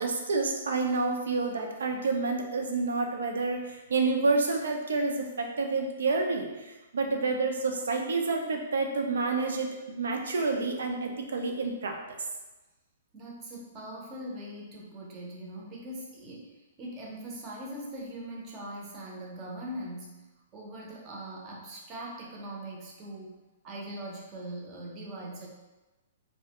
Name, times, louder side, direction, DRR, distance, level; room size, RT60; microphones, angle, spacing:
voice 1, 0.0-12.2, right 3 dB, 90° right, 3 dB, 0.4 m, -29 dB
voice 2, 13.1-20.2 20.5-23.4 23.6-25.5, right 1 dB, 25° right, -3 dB, 0.6 m, -41 dB
2.3 x 2.1 x 2.8 m, 1.1 s
hypercardioid pair, 155°, 0 cm